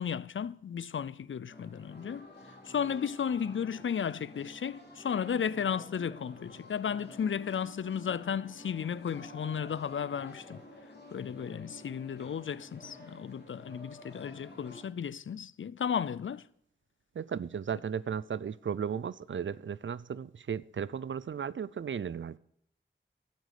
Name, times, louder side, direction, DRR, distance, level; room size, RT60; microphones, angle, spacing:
voice 1, 0.0-2.3 2.7-10.6 11.1-16.5, left 7 dB, 85° left, 0.4 m, -34 dB
sound 1, 1.5-14.8, left 1 dB, 60° left, 3.3 m, -51 dB
voice 2, 17.2-22.4, right 7 dB, 75° right, 0.5 m, -35 dB
11.5 x 8.1 x 6.7 m
wide cardioid pair, 70°, 20 cm